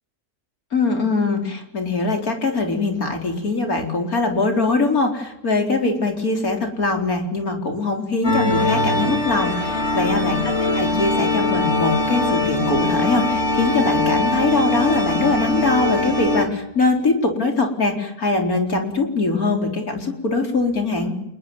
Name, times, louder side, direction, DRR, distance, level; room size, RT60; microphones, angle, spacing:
voice 1, 0.7-21.1, left 3 dB, 70° left, 4 dB, 4.7 m, -22 dB
sound 1, 8.2-16.5, left 2 dB, 45° left, 5.0 m, -21 dB
28.0 x 21.5 x 9.3 m, 0.87 s
omnidirectional pair, 1.6 m